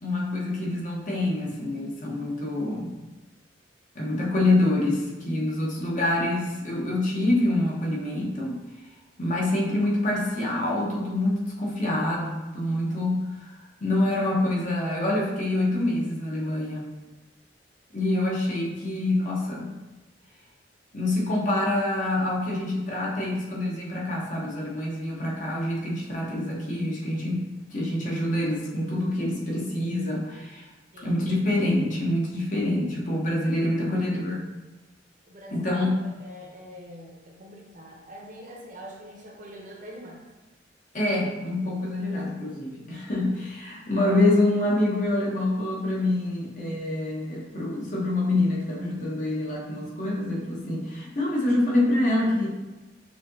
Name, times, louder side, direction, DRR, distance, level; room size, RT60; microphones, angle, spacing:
voice 1, 0.0-2.9 3.9-8.6 9.2-16.9 17.9-19.8 20.9-27.4 27.7-30.7 31.0-34.4 35.5-35.9 40.9-52.5, left 1 dB, 45° left, -4 dB, 1.0 m, -26 dB
voice 2, 35.3-40.2, equal, 45° right, -1 dB, 0.8 m, -44 dB
6.1 x 2.8 x 2.7 m, 1.1 s
head